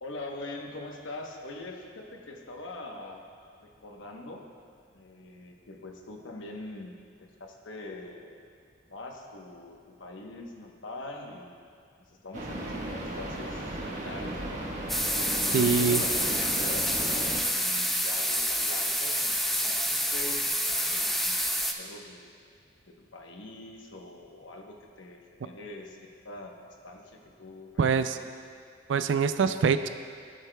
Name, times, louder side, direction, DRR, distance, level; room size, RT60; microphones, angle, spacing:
voice 1, 0.0-3.2 3.6-4.5 4.9-8.4 8.9-11.6 12.0-14.7 15.2-22.3 22.8-28.3, left 2 dB, 75° left, 2 dB, 1.0 m, -43 dB
sound 1, 12.3-17.4, right 1 dB, 40° right, 1.3 m, -36 dB
sound 2, 14.9-21.7, equal, ahead, 0.4 m, -28 dB
voice 2, 15.5-16.0 27.8-28.2 28.9-29.9, right 5 dB, 70° right, 10 dB, 0.3 m, -24 dB
16.5 x 7.9 x 2.2 m, 2.2 s
head